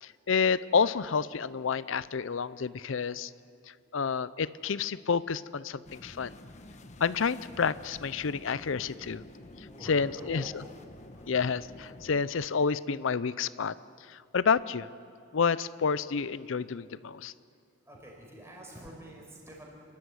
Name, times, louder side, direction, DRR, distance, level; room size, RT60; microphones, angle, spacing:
voice 1, 0.0-3.3 3.9-6.3 7.0-9.2 9.8-10.4 11.3-13.7 14.1-14.9 15.3-17.3, left 5 dB, 65° left, 17 dB, 0.5 m, -29 dB
voice 2, 3.7-4.2 9.7-10.7 11.1-11.4 17.8-19.7, equal, 15° right, -1 dB, 5.1 m, -48 dB
sound 1, 5.8-12.2, left 1 dB, 35° left, 1.1 m, -50 dB
29.0 x 13.0 x 9.7 m, 2.3 s
head